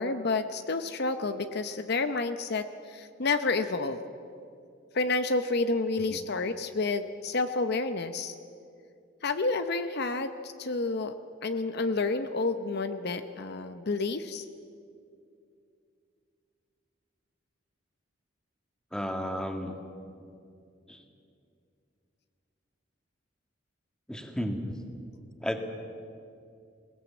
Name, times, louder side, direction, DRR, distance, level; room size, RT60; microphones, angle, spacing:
voice 1, 0.0-4.0 4.9-8.3 9.2-11.1 11.4-14.4, left 3 dB, 55° left, 9 dB, 0.8 m, -29 dB
voice 2, 18.9-19.8 20.9-21.0 24.1-24.6 25.4-25.6, equal, 5° left, 4 dB, 2.0 m, -33 dB
21.0 x 19.0 x 8.4 m, 2.5 s
head